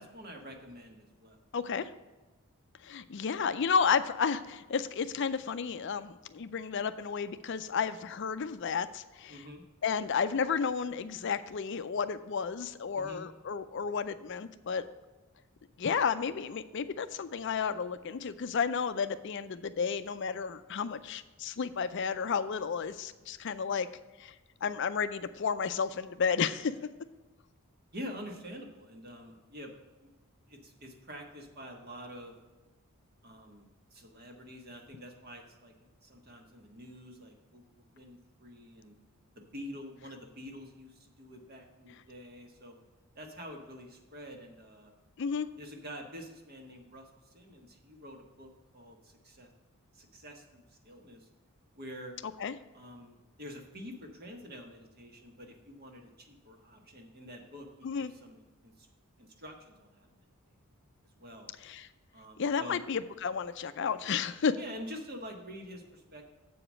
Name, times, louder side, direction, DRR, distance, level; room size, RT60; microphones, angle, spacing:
voice 1, 0.0-1.4 9.3-9.6 12.9-13.3 27.9-29.7 30.0-30.1 30.5-32.3 33.2-35.7 36.0-38.9 39.3-42.7 43.1-44.9 45.6-49.5 49.9-51.3 51.7-52.1 52.7-58.9 59.2-60.2 61.2-61.5 62.1-62.8 64.6-66.2, equal, 45° right, 2 dB, 1.5 m, -47 dB
voice 2, 1.5-1.9 2.8-9.4 9.8-14.8 15.8-23.9 24.2-24.3 24.6-26.7 45.2-45.5 52.4-52.5 57.8-58.1 61.6-61.9 62.4-64.6, left 6 dB, 55° left, 12 dB, 0.4 m, -32 dB
7.8 x 5.0 x 7.3 m, 1.2 s
head